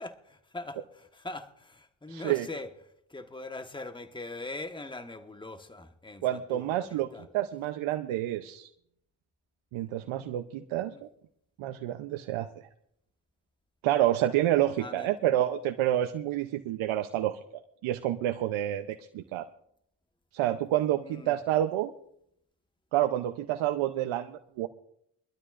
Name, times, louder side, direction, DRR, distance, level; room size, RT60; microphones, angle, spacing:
voice 1, 0.0-2.7 3.1-7.2 10.9-11.0 14.8-15.1 21.0-21.4, left 2 dB, 10° left, 7 dB, 1.3 m, -42 dB
voice 2, 2.1-2.5 6.2-7.1 7.3-8.7 9.7-10.9 11.6-12.5 13.8-17.4 17.8-19.4 20.3-21.9 22.9-24.7, right 13 dB, 85° right, 8 dB, 0.8 m, -28 dB
24.0 x 12.5 x 2.5 m, 0.72 s
supercardioid pair, 60°, 47 cm